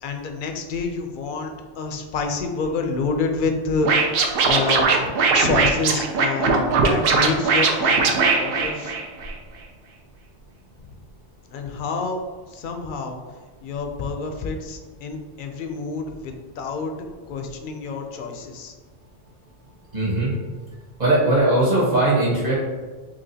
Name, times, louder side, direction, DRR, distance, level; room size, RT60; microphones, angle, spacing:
voice 1, 0.0-4.0 4.4-4.9 5.3-8.9 11.5-12.2 12.5-13.2 13.6-16.9 17.3-18.7, left 4 dB, 60° left, 4 dB, 0.6 m, -28 dB
Scratching (performance technique), 3.8-9.3, right 4 dB, 65° right, 0.7 m, -19 dB
voice 2, 19.9-20.3 21.0-22.6, right 2 dB, 40° right, -6 dB, 1.5 m, -19 dB
5.7 x 2.4 x 2.7 m, 1.4 s
omnidirectional pair, 1.1 m